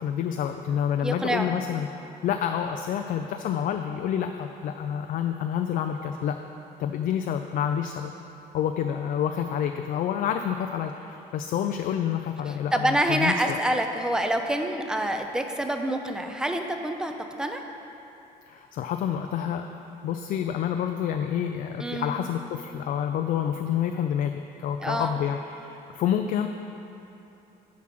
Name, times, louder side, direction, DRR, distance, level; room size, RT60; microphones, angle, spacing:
voice 1, 0.0-1.9 2.2-6.4 6.8-8.1 8.5-13.6 18.5-19.7 20.0-26.5, left 9 dB, 55° left, 6 dB, 0.4 m, -28 dB
voice 2, 1.0-1.6 12.5-17.1 17.4-17.6 21.8-22.3 24.8-25.1, right 1 dB, 5° right, 5 dB, 0.5 m, -27 dB
7.3 x 4.9 x 5.9 m, 2.9 s
cardioid pair, 110°, 17 cm